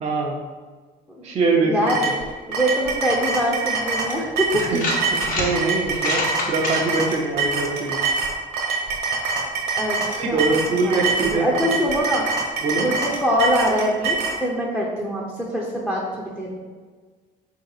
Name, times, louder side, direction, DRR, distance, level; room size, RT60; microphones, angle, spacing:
voice 1, 0.0-0.4 1.2-2.1 4.5-8.0 10.2-11.8 12.6-12.9, right 3 dB, 40° right, -1 dB, 0.5 m, -23 dB
voice 2, 1.2-2.1 2.5-4.6 9.7-10.5 10.7-12.3 12.8-16.6, equal, ahead, -3 dB, 0.6 m, -24 dB
sound 1, 1.9-14.4, right 4 dB, 70° right, 0.9 m, -25 dB
sound 2, 4.6-5.5 5.9-6.8, left 2 dB, 55° left, 1.1 m, -26 dB
3.8 x 2.7 x 3.9 m, 1.4 s
cardioid pair, 110°, 17 cm